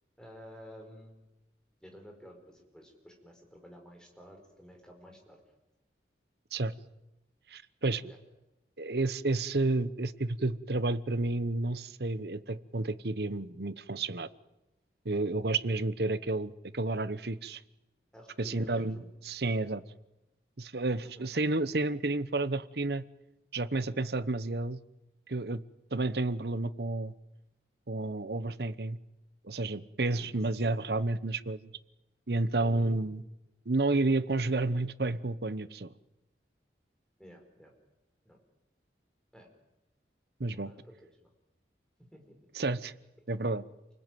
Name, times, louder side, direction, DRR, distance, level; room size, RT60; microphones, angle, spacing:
voice 1, 0.2-1.2 1.8-5.4 8.1-8.2 18.1-19.1 19.5-19.6 21.0-21.3 30.6-30.7 32.6-33.0 37.2-37.7 38.2-38.4 39.3-39.5 40.5-41.3 42.1-42.2, equal, 5° left, 2 dB, 4.7 m, -51 dB
voice 2, 7.5-8.1 8.8-14.3 15.0-17.6 18.4-19.8 20.6-23.0 23.5-24.8 25.3-25.6 25.9-27.1 27.9-29.0 29.4-31.7 32.3-33.2 33.7-35.9 40.4-40.7 42.5-42.9 43.3-43.6, right 2 dB, 65° right, 15 dB, 1.0 m, -31 dB
28.5 x 20.5 x 9.3 m, 0.96 s
head